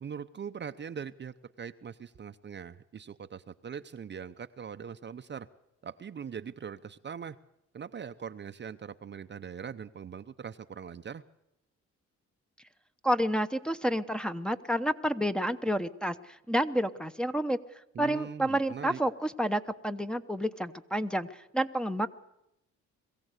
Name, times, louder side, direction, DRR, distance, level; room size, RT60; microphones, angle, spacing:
voice 1, 0.0-5.5 5.8-7.4 7.7-11.2 17.9-19.0, right 7 dB, 35° right, 10 dB, 0.7 m, -41 dB
voice 2, 13.0-17.6 18.0-22.1, equal, 5° left, 7 dB, 0.9 m, -29 dB
22.0 x 15.5 x 8.2 m, 0.83 s
cardioid pair, 90°, 30 cm